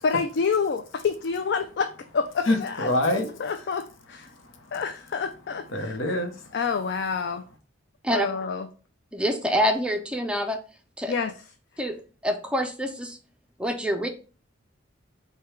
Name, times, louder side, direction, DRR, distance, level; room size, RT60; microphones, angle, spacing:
voice 1, 0.0-2.9 3.4-4.3 4.7-5.9 6.5-7.4 8.1-8.7 11.1-11.3, left 5 dB, 60° left, 0.4 m, -28 dB
voice 2, 2.4-3.7 4.3-4.8 5.7-6.6, left 1 dB, 85° left, 0.8 m, -27 dB
voice 3, 9.1-10.6 11.0-11.1 11.8-12.0 12.2-13.2 13.6-14.1, equal, 5° right, 0.4 m, -26 dB
4.8 x 2.2 x 4.5 m
head